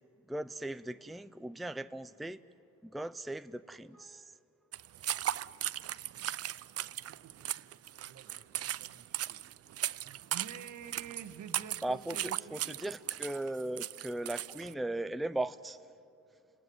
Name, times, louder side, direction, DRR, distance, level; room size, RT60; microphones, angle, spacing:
voice 1, 0.3-2.4 2.8-4.3 11.8-15.8, right 1 dB, ahead, 12 dB, 0.5 m, -38 dB
sound 1, 4.7-14.7, right 12 dB, 55° right, 0.5 m, -37 dB
voice 2, 7.1-7.6 8.0-9.4 10.0-12.7, right 8 dB, 75° right, 9 dB, 1.6 m, -49 dB
30.0 x 19.0 x 9.6 m, 2.7 s
cardioid pair, 90°, 30 cm